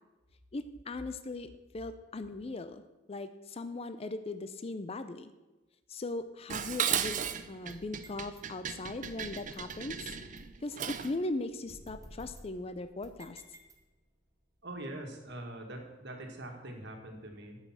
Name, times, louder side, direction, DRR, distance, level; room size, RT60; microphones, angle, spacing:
voice 1, 0.5-2.8 3.1-5.3 5.9-7.2 7.5-10.1 10.6-13.4, left 2 dB, 30° left, 11 dB, 0.5 m, -39 dB
Dishes pots and pans, 6.5-11.2, right 8 dB, 40° right, 0.5 m, -35 dB
sound 1, 7.7-8.4 9.0-10.6 11.0-11.1 11.7-14.2, right 1 dB, 20° right, 1.1 m, -54 dB
voice 2, 14.6-17.6, right 1 dB, 65° right, 3 dB, 1.9 m, -43 dB
10.0 x 5.6 x 7.3 m, 1.1 s
head